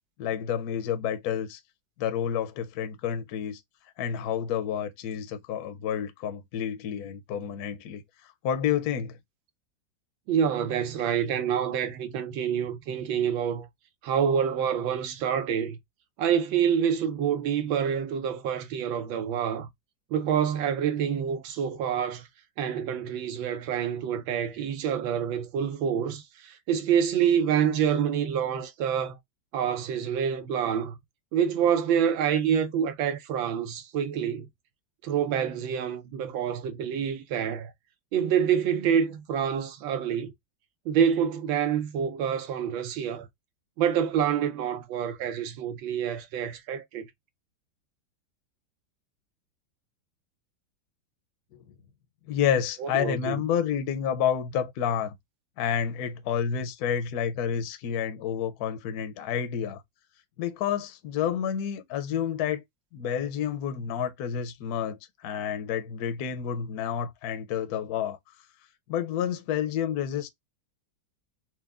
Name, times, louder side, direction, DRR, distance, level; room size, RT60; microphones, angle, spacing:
voice 1, 0.2-1.6 2.0-3.6 4.0-8.0 8.4-9.2 51.5-51.6 52.3-55.1 55.6-59.8 60.4-62.6 62.9-68.2 68.9-70.3, left 8 dB, 70° left, 1.0 m, -29 dB
voice 2, 10.3-13.7 14.0-15.8 16.2-19.7 20.1-22.3 22.6-29.2 29.5-31.0 31.3-34.5 35.0-37.7 38.1-40.3 40.9-43.3 43.8-47.1 52.8-53.4, right 8 dB, 90° right, 1.5 m, -27 dB
4.5 x 2.2 x 3.5 m
omnidirectional pair, 2.1 m